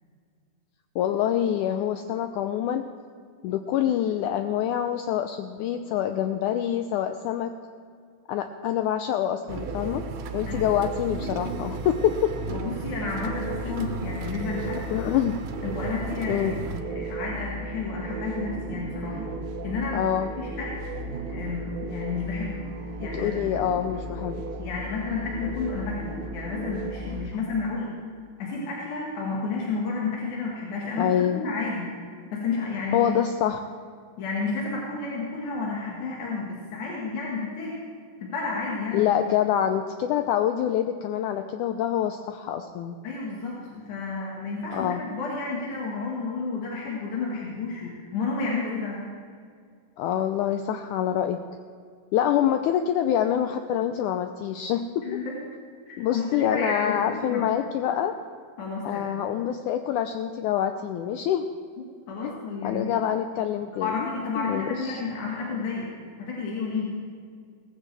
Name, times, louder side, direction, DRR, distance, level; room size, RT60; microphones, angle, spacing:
voice 1, 1.0-2.9 3.4-7.5 8.3-10.0 10.3-12.3 14.9-15.4 16.3-16.6 19.9-20.3 23.2-24.4 31.0-31.4 32.9-33.6 38.9-43.0 44.7-45.0 50.0-51.4 52.1-55.2 56.0-58.1 58.9-61.5 62.2-62.4 62.6-64.1 64.4-65.0, left 10 dB, 90° left, 7 dB, 1.7 m, -26 dB
sound 1, 9.5-16.8, right 5 dB, 70° right, 2.3 m, -38 dB
sound 2, 9.5-27.3, right 2 dB, 90° right, 1.1 m, -35 dB
voice 2, 10.5-10.9 12.5-14.8 15.6-19.3 19.6-20.1 20.4-20.8 21.3-22.7 23.0-23.4 24.6-27.9 28.4-32.0 32.3-33.1 34.2-37.7 38.2-39.1 43.0-49.1 55.0-55.4 55.9-57.5 58.6-59.1 62.1-63.0 63.8-67.0, left 4 dB, 60° left, -4 dB, 2.9 m, -31 dB
17.5 x 15.0 x 3.4 m, 2.1 s
omnidirectional pair, 4.1 m